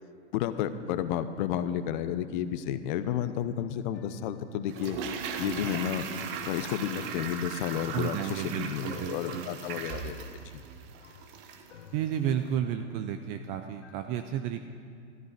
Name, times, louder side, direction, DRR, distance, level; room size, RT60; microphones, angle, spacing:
voice 1, 0.3-5.0 5.4-6.1 6.5-10.6, left 10 dB, 40° left, 12 dB, 0.7 m, -32 dB
sound 1, 3.8-14.0, left 7 dB, 70° left, 1.1 m, -54 dB
Toilet flush, 4.7-11.8 12.0-12.1, right 6 dB, 45° right, 1.2 m, -38 dB
voice 2, 7.9-9.5 11.9-14.6, right 9 dB, 20° right, 7 dB, 0.3 m, -32 dB
13.5 x 13.5 x 5.0 m, 2.3 s
figure-of-eight pair, 100°, 37 cm